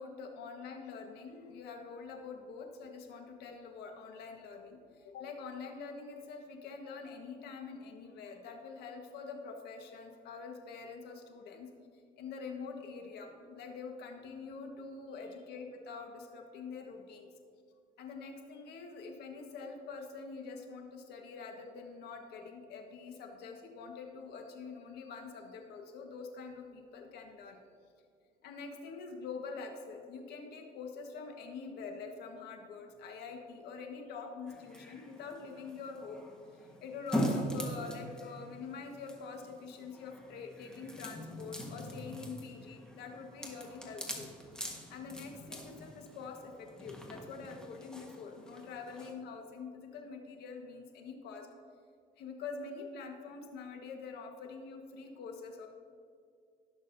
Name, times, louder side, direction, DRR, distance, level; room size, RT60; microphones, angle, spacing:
voice 1, 0.0-11.7 12.2-17.3 18.0-27.6 28.4-36.2 36.5-44.3 44.9-51.5 52.2-55.7, left 4 dB, 75° left, 3 dB, 1.4 m, -45 dB
sound 1, 34.5-49.1, equal, 5° left, 1.4 m, -42 dB
17.0 x 6.4 x 2.7 m, 2.2 s
cardioid pair, 110°, 17 cm